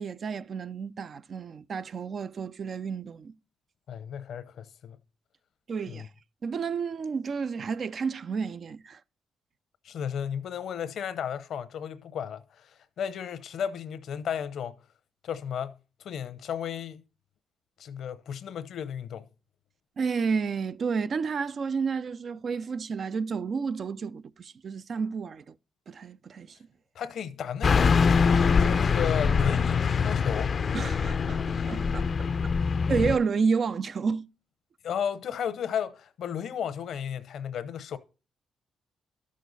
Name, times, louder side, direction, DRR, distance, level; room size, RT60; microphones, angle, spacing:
voice 1, 0.0-3.3 5.7-6.1 6.4-9.0 20.0-25.4 25.9-26.6 30.7-32.3 32.9-34.3, right 5 dB, 50° right, 0.5 m, -31 dB
voice 2, 3.9-5.0 5.9-6.1 9.8-14.8 15.2-15.7 16.0-17.0 17.8-19.2 26.9-27.9 28.6-30.5 34.8-38.0, left 8 dB, 70° left, 0.8 m, -34 dB
Car passing by / Truck, 27.6-33.2, left 5 dB, 45° left, 0.5 m, -24 dB
12.5 x 6.4 x 4.0 m
cardioid pair, 80°, 0 cm